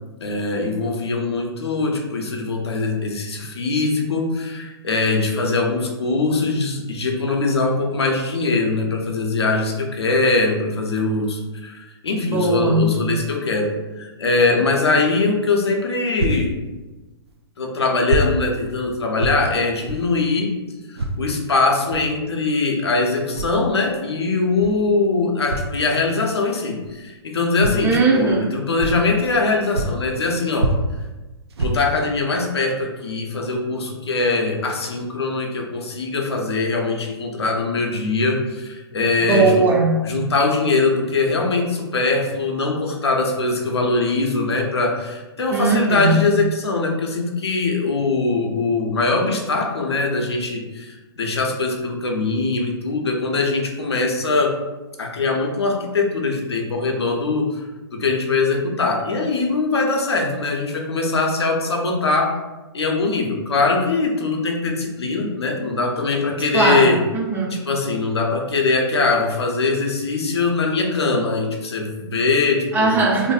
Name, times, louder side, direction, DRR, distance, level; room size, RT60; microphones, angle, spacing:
voice 1, 0.2-13.7 14.0-16.6 17.6-20.5 20.9-30.7 31.6-39.7 40.0-54.6 55.0-57.6 57.9-62.4 62.7-67.0 67.5-72.9, left 3 dB, 85° left, 1 dB, 0.5 m, -22 dB
voice 2, 12.2-13.0 27.8-28.5 39.2-40.1 45.5-46.3 66.5-67.6 72.7-73.3, right 3 dB, 15° right, -2 dB, 0.4 m, -19 dB
sound 1, 16.2-16.4 17.3-17.4 18.1-18.3 18.6-18.8 19.1-19.4 19.9-20.0 20.9-21.2 21.9-22.1 23.2-23.6 24.6-24.7 25.4-25.7 26.8-26.9 27.6-27.8 28.3-28.4 28.7-29.4 29.7-30.2 30.5-31.1 31.5-32.1 32.6-32.7 33.2-33.3, right 2 dB, 80° right, 0.4 m, -25 dB
2.6 x 2.5 x 2.3 m, 1.1 s
hypercardioid pair, 125°, 13 cm